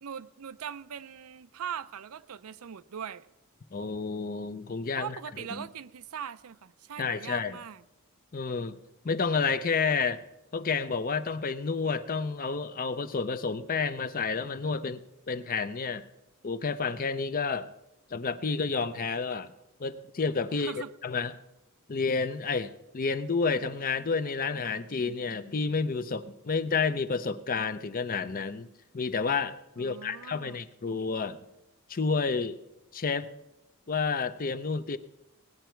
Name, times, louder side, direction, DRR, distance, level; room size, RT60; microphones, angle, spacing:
voice 1, 0.0-3.3 5.0-7.8 20.5-20.9 29.8-30.6, right 8 dB, 80° right, 0.5 m, -40 dB
voice 2, 3.7-5.2 5.5-5.7 7.0-7.6 8.3-8.8 9.0-10.2 10.5-16.0 16.4-17.7 18.1-19.5 19.8-20.7 21.0-21.3 21.9-28.7 28.9-31.4 31.9-32.6 32.9-33.3 33.9-35.0, left 4 dB, 40° left, 0.6 m, -30 dB
18.0 x 9.3 x 4.5 m
head